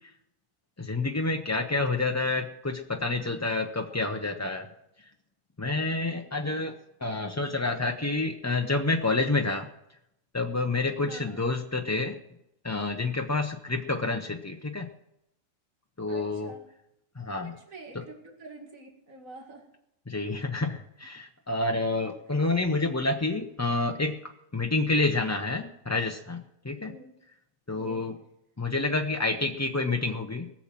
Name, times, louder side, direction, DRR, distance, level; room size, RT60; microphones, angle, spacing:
voice 1, 0.8-4.7 5.6-9.7 10.3-12.2 12.6-14.9 16.0-16.5 17.2-17.5 17.9-18.0 20.1-24.2 24.5-26.9 27.7-28.1 28.6-30.5, left 3 dB, 20° left, 3 dB, 0.5 m, -28 dB
voice 2, 11.0-11.4 16.1-16.7 17.2-19.7 26.8-27.1 27.7-28.0, right 2 dB, 85° right, 2 dB, 2.5 m, -47 dB
19.0 x 7.3 x 7.4 m, 0.83 s
omnidirectional pair, 1.4 m